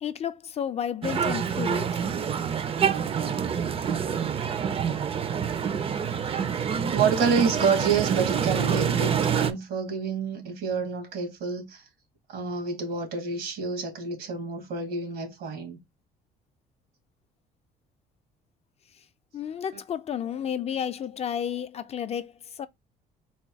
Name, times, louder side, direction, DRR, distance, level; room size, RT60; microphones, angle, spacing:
voice 1, 0.0-1.9 19.3-22.7, left 9 dB, 40° left, 0.4 m, -32 dB
sound 1, 1.0-9.5, right 7 dB, 35° right, 0.5 m, -27 dB
voice 2, 6.9-11.8 12.3-15.8, right 5 dB, 90° right, 2.1 m, -28 dB
4.1 x 2.2 x 4.5 m
cardioid pair, 110°, 17 cm